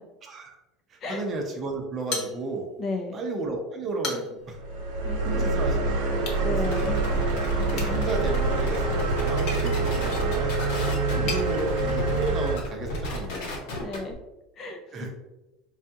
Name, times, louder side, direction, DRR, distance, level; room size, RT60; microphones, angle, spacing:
voice 1, 0.2-0.6 0.9-2.7 3.1-4.6 5.2-6.0 6.5-6.6 7.6-10.5 11.1-13.4 14.9-15.1, right 2 dB, 25° right, 2 dB, 0.7 m, -33 dB
sound 1, 2.1-2.9 3.2-3.3 3.8-4.5 6.2-6.5 7.7-11.5, left 3 dB, 55° left, 1.0 m, -38 dB
voice 2, 2.8-3.1 5.0-5.6 6.4-7.0 11.2-11.4 13.8-14.2 14.6-15.1, left 3 dB, 30° left, 2 dB, 0.5 m, -34 dB
sound 2, 4.5-12.6, right 3 dB, 80° right, 1.0 m, -26 dB
sound 3, 6.6-14.1, equal, 75° left, 1.1 m, -33 dB
4.8 x 2.3 x 2.7 m, 1.0 s
supercardioid pair, 150°, 0 cm